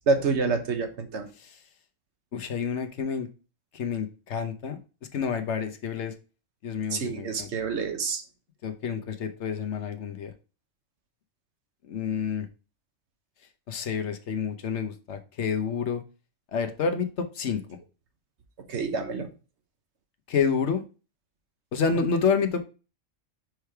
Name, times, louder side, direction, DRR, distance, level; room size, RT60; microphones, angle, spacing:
voice 1, 0.1-1.3 6.9-8.2 18.6-19.3, right 4 dB, 60° right, 6 dB, 1.3 m, -27 dB
voice 2, 2.3-3.3 3.7-4.8 5.1-6.1 6.6-7.5 8.6-10.3 11.8-12.5 13.7-16.0 16.5-17.8 20.3-20.8 21.7-22.6, left 6 dB, 60° left, 7 dB, 1.2 m, -29 dB
5.1 x 4.7 x 4.5 m, 0.33 s
omnidirectional pair, 1.4 m